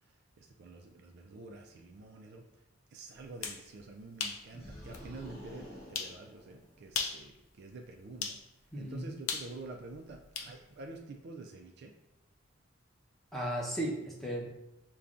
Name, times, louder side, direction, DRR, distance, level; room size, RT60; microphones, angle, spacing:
voice 1, 0.4-2.5 2.9-8.4 8.8-11.9, right 3 dB, 50° right, 3 dB, 0.4 m, -48 dB
sound 1, 3.2-3.6 4.2-4.4 4.9-5.0 5.9-6.2 6.9-7.2 8.2-8.4 9.3-10.5, left 6 dB, 80° left, 0.5 m, -36 dB
sound 2, 4.5-7.0, left 1 dB, 30° left, 1.5 m, -49 dB
voice 2, 8.7-9.1 13.3-14.6, right 1 dB, ahead, -5 dB, 0.8 m, -36 dB
6.8 x 2.3 x 2.5 m, 0.94 s
head